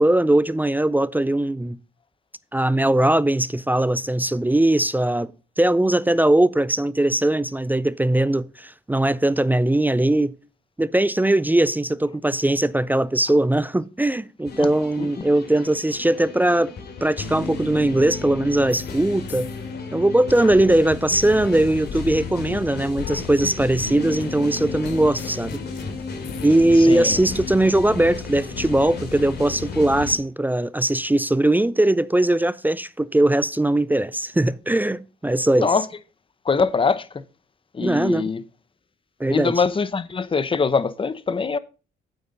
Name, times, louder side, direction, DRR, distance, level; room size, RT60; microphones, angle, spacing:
voice 1, 0.0-1.8 2.5-5.3 5.6-10.3 10.8-16.7 17.0-19.5 19.9-25.6 26.4-35.7 37.8-38.3 39.2-39.5, right 1 dB, 10° right, 0.3 m, -20 dB
sound 1, 14.4-30.2, left 4 dB, 55° left, 2.6 m, -33 dB
sound 2, 18.7-19.0 19.3-21.5 21.8-26.5, left 10 dB, 70° left, 0.7 m, -40 dB
voice 2, 26.8-27.2 35.6-35.8 36.4-37.2 37.7-38.4 39.3-41.6, left 5 dB, 25° left, 0.7 m, -23 dB
8.7 x 8.0 x 3.9 m
cardioid pair, 90°, 20 cm